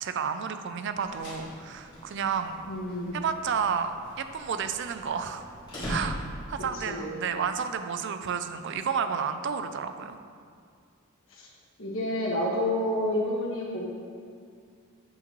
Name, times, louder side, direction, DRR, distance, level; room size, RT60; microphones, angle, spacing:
voice 1, 0.0-2.6 3.1-5.5 5.9-6.2 6.5-10.2, right 6 dB, 55° right, 9 dB, 0.4 m, -31 dB
sound 1, 0.9-6.7, equal, 20° left, 1.8 m, -41 dB
voice 2, 2.7-3.2 6.7-7.2 11.3-11.5 11.8-13.9, left 1 dB, 65° left, -4 dB, 1.4 m, -29 dB
8.3 x 5.5 x 3.0 m, 2.2 s
head